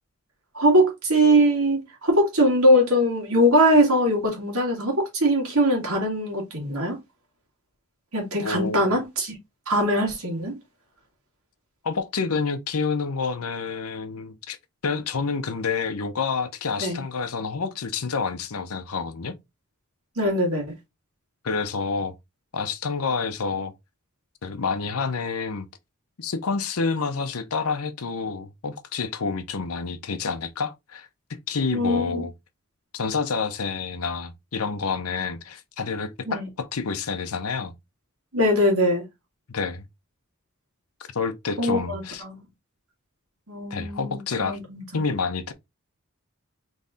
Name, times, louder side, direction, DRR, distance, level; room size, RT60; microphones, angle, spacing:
voice 1, 0.5-7.0 8.1-9.3 9.7-10.6 16.8-17.0 20.2-20.7 31.7-32.2 36.3-36.5 38.3-39.1 41.6-42.4 43.5-45.0, equal, 75° right, 2.0 m, -21 dB
voice 2, 8.4-8.8 11.8-14.6 14.8-19.3 21.4-22.1 22.5-23.7 24.4-25.7 26.2-31.1 31.5-32.3 32.9-37.7 39.5-39.8 41.1-42.2 43.7-44.6 44.9-45.5, left 5 dB, 80° left, 0.7 m, -28 dB
4.0 x 3.2 x 3.5 m
head